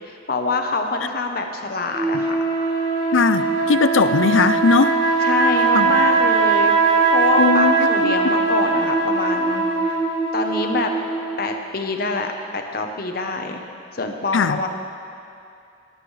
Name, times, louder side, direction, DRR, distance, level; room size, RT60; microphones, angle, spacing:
voice 1, 0.0-2.3 5.2-10.0 10.3-10.9 11.4-13.6 13.9-14.7, left 3 dB, 50° left, 4 dB, 0.9 m, -26 dB
sound 1, 1.9-11.6, right 4 dB, 20° right, 1.9 m, -20 dB
voice 2, 3.1-5.0 5.7-5.9 7.4-7.7 8.0-8.3 14.3-14.6, left 5 dB, 80° left, 12 dB, 0.5 m, -18 dB
20.0 x 9.8 x 3.3 m, 2.5 s
head